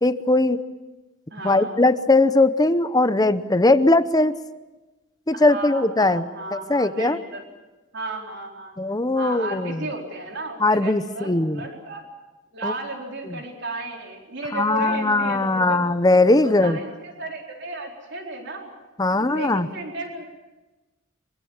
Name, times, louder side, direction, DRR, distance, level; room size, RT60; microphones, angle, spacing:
voice 1, 0.0-0.6 1.4-4.4 5.3-7.2 8.8-9.8 10.6-11.6 12.6-12.7 14.5-16.8 19.0-19.7, left 2 dB, 20° left, 12 dB, 0.7 m, -20 dB
voice 2, 1.3-1.8 5.3-7.4 7.9-8.7 9.1-12.0 12.5-15.9 16.4-18.7 19.1-20.3, right 2 dB, 55° right, 1 dB, 4.3 m, -34 dB
24.5 x 23.5 x 7.3 m, 1.1 s
head